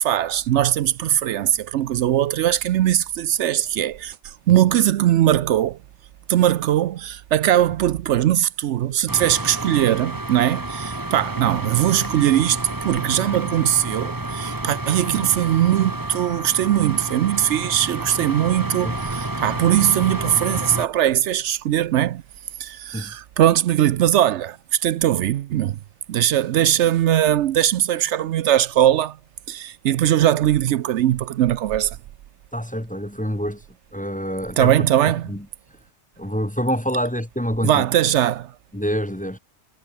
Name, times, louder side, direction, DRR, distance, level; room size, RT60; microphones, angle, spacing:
voice 1, 0.0-5.8 6.3-22.2 22.6-25.8 26.1-29.2 29.5-32.0 34.6-35.3 37.6-38.5, right 12 dB, 75° right, 0.9 m, -20 dB
sound 1, 9.1-20.9, right 2 dB, 15° right, 1.7 m, -30 dB
voice 2, 32.5-33.6 33.9-34.8 35.3-35.5 36.2-37.9 38.7-39.4, equal, 5° left, 1.4 m, -26 dB
omnidirectional pair, 1.2 m